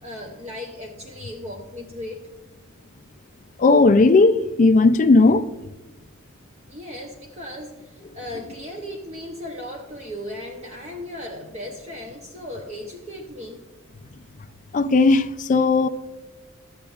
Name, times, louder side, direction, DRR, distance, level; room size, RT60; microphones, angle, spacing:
voice 1, 0.0-2.2 6.7-13.6, left 1 dB, 30° right, 0.7 m, -36 dB
voice 2, 3.6-5.5 14.7-15.9, left 3 dB, 35° left, 0.4 m, -16 dB
12.5 x 8.4 x 2.4 m
head